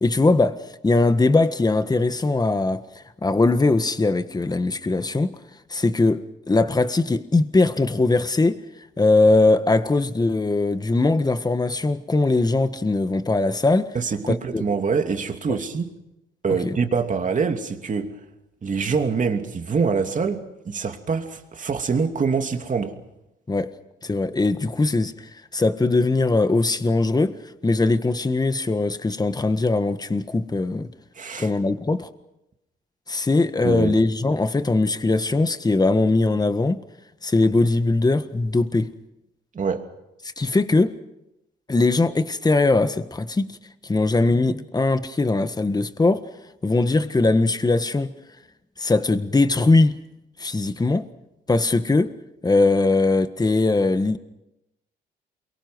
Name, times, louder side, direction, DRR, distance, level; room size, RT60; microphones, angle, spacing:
voice 1, 0.0-2.8 3.2-5.4 5.7-8.6 9.0-13.9 14.3-14.6 15.5-15.6 16.6-16.8 23.5-23.7 24.0-25.1 25.5-27.4 27.6-30.9 31.4-32.1 33.1-36.8 37.2-38.9 40.4-40.9 41.7-43.5 43.8-46.3 46.6-48.1 48.8-50.0 50.4-51.1 51.5-52.1 52.4-54.2, left 3 dB, 20° left, 1.6 m, -20 dB
voice 2, 13.9-15.9 16.4-18.1 18.6-23.0 31.1-31.5 33.6-34.0 39.5-39.9, right 5 dB, 40° right, 2.9 m, -25 dB
28.5 x 23.5 x 6.2 m
cardioid pair, 90°, 20 cm